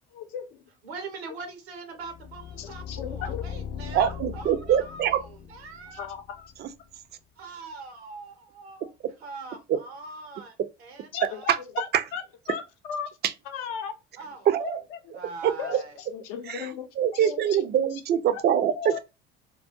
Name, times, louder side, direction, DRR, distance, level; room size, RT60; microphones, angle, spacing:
voice 1, 0.1-0.6 2.6-3.4 5.9-6.5 11.1-11.9 12.1-12.2 12.5-13.1 13.5-13.9 14.6-15.1 15.6-15.8 16.1-17.6 18.7-19.0, left 8 dB, 70° left, 0.6 m, -36 dB
voice 2, 0.8-6.1 7.4-8.9 9.2-10.5 10.8-11.5 14.2-14.5 15.1-16.0, right 4 dB, 85° right, 0.8 m, -42 dB
sound 1, 2.0-7.0, left 8 dB, 35° left, 0.4 m, -39 dB
voice 3, 3.9-5.2 6.6-6.7 9.7-9.8 11.2-11.6 11.9-12.0 14.5-14.8 15.4-15.8 16.5-16.7 17.0-19.0, right 9 dB, 35° right, 0.4 m, -24 dB
2.3 x 2.2 x 2.7 m
hypercardioid pair, 65°, 31 cm